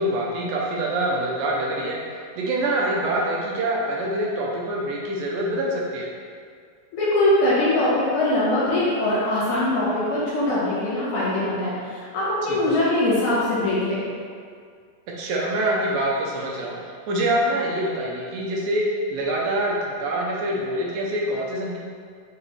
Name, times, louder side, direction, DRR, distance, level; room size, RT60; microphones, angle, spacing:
voice 1, 0.0-6.1 12.5-12.8 15.2-21.8, right 1 dB, 80° right, -3 dB, 2.3 m, -25 dB
voice 2, 6.9-14.0, left 1 dB, 60° left, -9 dB, 2.6 m, -22 dB
5.9 x 5.1 x 3.2 m, 2.1 s
omnidirectional pair, 4.2 m